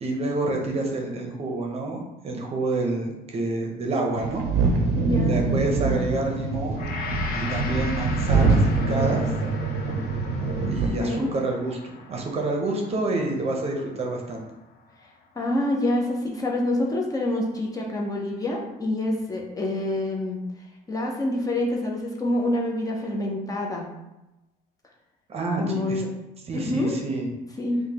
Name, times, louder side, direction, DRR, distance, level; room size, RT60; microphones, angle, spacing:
voice 1, 0.0-4.4 5.2-6.8 7.3-9.2 9.8-9.9 10.6-14.5 25.3-26.0 26.5-27.3, right 2 dB, 35° right, 1 dB, 0.7 m, -28 dB
sound 1, 4.1-10.9, right 3 dB, 85° right, 0.5 m, -24 dB
voice 2, 5.0-5.4 10.9-11.3 15.4-20.4 20.9-23.9 25.6-26.1 26.5-26.9 27.6-27.8, left 1 dB, 20° left, -1 dB, 0.6 m, -26 dB
Gong, 6.8-15.1 15.5-15.7, left 4 dB, 65° left, 0.5 m, -39 dB
4.8 x 2.2 x 2.8 m, 0.97 s
cardioid pair, 110°, 17 cm